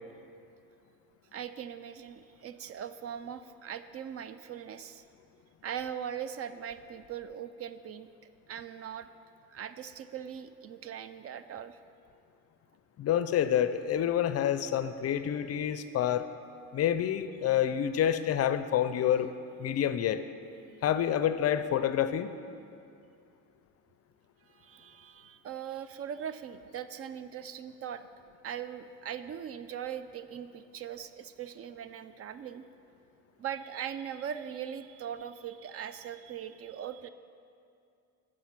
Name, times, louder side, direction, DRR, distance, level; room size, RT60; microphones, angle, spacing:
voice 1, 1.3-5.0 5.6-8.1 8.5-9.1 9.5-11.8 24.5-28.0 28.4-32.6 33.4-37.1, right 9 dB, 45° right, 12 dB, 0.4 m, -40 dB
voice 2, 13.0-16.3 16.7-19.3 19.6-20.2 20.8-22.3, left 10 dB, 45° left, 11 dB, 0.5 m, -28 dB
14.0 x 5.0 x 6.0 m, 2.5 s
cardioid pair, 110°, 34 cm